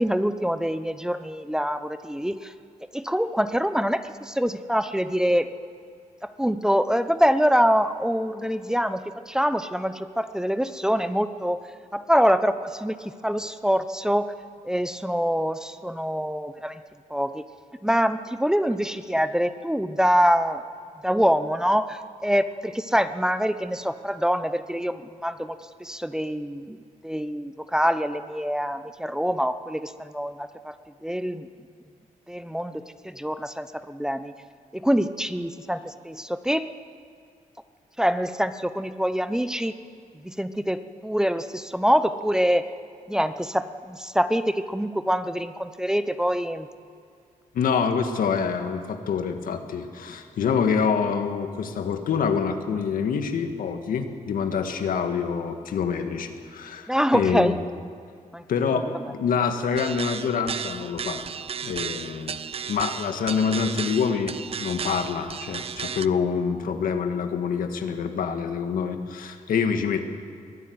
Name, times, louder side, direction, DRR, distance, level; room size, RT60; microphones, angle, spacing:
voice 1, 0.0-2.5 2.9-5.5 6.2-11.6 11.9-14.3 14.6-16.8 17.1-17.4 17.8-20.6 21.0-26.8 27.0-30.8 31.0-31.5 32.3-34.3 34.7-36.7 38.0-39.7 40.2-42.7 43.1-46.7 56.9-57.6 58.3-58.4 58.7-58.8, equal, 5° right, 11 dB, 0.7 m, -25 dB
voice 2, 47.5-57.6 58.5-61.2 61.6-62.4 62.7-70.1, left 6 dB, 85° left, 6 dB, 1.8 m, -26 dB
sound 1, 59.7-66.1, right 7 dB, 45° right, 0.5 m, -34 dB
22.5 x 12.5 x 9.4 m, 2.3 s
cardioid pair, 115°, 14 cm